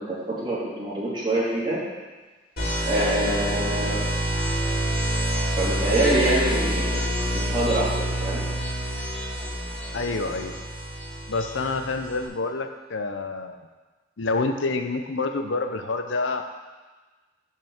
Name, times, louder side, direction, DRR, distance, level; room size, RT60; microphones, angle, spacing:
voice 1, 0.0-1.8 2.8-4.0 5.5-7.0 7.3-8.4, right 1 dB, 25° right, -8 dB, 2.9 m, -25 dB
sound 1, 2.6-12.3, equal, 55° left, 3.1 m, -27 dB
voice 2, 9.9-10.6 11.3-13.6 14.2-16.4, left 3 dB, 80° left, 6 dB, 0.7 m, -27 dB
6.9 x 5.7 x 7.1 m, 1.3 s
head